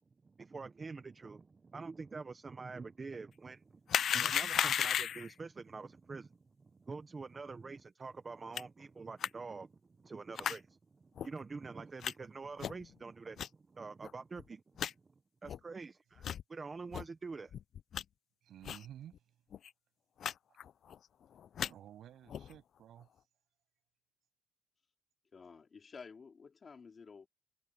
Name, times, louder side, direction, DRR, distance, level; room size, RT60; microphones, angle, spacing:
voice 1, 0.2-14.9 15.4-17.5, right 4 dB, 20° right, 0.8 m, -46 dB
sound 1, 3.9-5.3 8.6-8.7 9.2-9.3 10.4-10.6 11.2-11.3 12.0-12.1 12.6-12.9 13.4-13.5 14.0-14.1 14.4-14.5 14.8-14.9 15.5-15.6 16.2-16.4 16.9-17.0 17.5-18.0 18.6-18.9 19.1-19.2 19.5-19.7 20.2-20.3 20.6-21.0 21.4-21.7 22.3-22.5, left 9 dB, 45° left, 0.4 m, -34 dB
voice 2, 18.4-19.2 21.6-23.1, right 11 dB, 60° right, 7.5 m, -53 dB
voice 3, 25.3-27.3, left 5 dB, 30° left, 3.0 m, -52 dB
cardioid pair, 150°, 0 cm